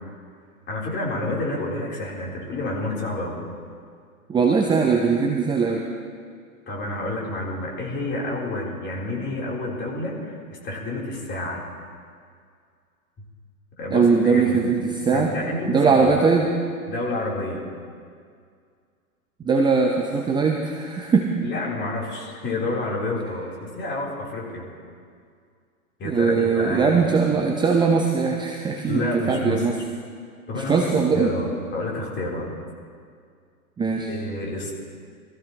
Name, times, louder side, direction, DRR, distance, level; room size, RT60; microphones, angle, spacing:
voice 1, 0.7-3.4 6.7-11.6 13.8-14.7 15.1-16.2 16.9-17.6 21.4-24.7 26.0-27.0 28.8-29.6 30.5-32.5 34.1-34.7, left 2 dB, 25° left, -3 dB, 3.7 m, -29 dB
voice 2, 4.3-5.9 13.9-15.3 15.7-16.5 19.4-21.3 26.0-29.8 30.5-31.3 33.8-34.1, right 5 dB, 10° right, 1 dB, 0.8 m, -20 dB
22.5 x 14.5 x 3.0 m, 2.2 s
hypercardioid pair, 110°, 44 cm